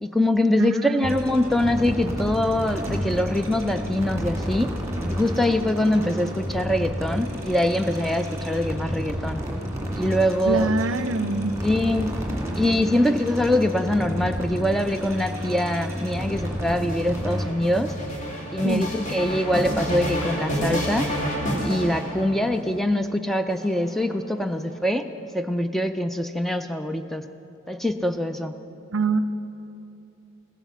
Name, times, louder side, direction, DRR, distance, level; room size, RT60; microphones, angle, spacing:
voice 1, 0.0-4.8 5.1-9.4 9.9-10.7 11.6-12.1 12.5-17.9 18.5-21.1 21.6-25.1 25.3-27.2 27.7-28.5, left 1 dB, ahead, 8 dB, 0.4 m, -23 dB
voice 2, 0.6-1.1 10.5-11.5 18.6-18.8 28.9-29.2, right 3 dB, 65° right, 13 dB, 0.5 m, -24 dB
sound 1, 1.0-17.5, equal, 15° right, 2.0 m, -30 dB
sound 2, 14.8-22.7 23.5-24.4, equal, 40° left, 2.3 m, -30 dB
15.0 x 9.9 x 7.2 m, 2.8 s
head